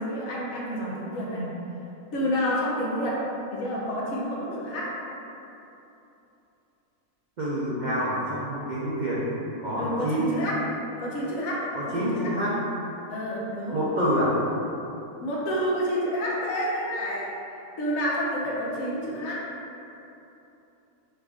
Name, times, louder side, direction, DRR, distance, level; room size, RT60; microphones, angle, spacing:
voice 1, 0.0-1.5 2.1-3.2 3.5-4.9 9.8-10.6 11.0-12.3 13.1-13.8 15.2-17.3 17.8-19.4, equal, 70° left, -5 dB, 1.2 m, -29 dB
voice 2, 7.4-9.3 9.6-10.4 11.7-12.5 13.7-14.4, equal, 85° right, -7 dB, 0.4 m, -27 dB
5.3 x 2.5 x 3.5 m, 2.9 s
omnidirectional pair, 1.6 m